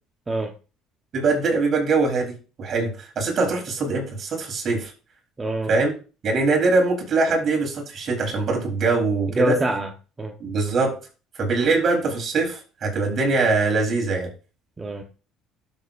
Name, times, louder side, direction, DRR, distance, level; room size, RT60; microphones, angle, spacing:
voice 1, 1.1-4.9 5.7-5.9 6.2-9.6 10.4-11.0 11.4-14.3, right 3 dB, 45° right, 1 dB, 3.9 m, -22 dB
voice 2, 5.4-5.7 9.3-9.9 10.2-10.3 14.8-15.0, right 1 dB, 20° right, 2 dB, 1.2 m, -24 dB
12.0 x 6.8 x 2.6 m, 0.34 s
supercardioid pair, 85°, 0 cm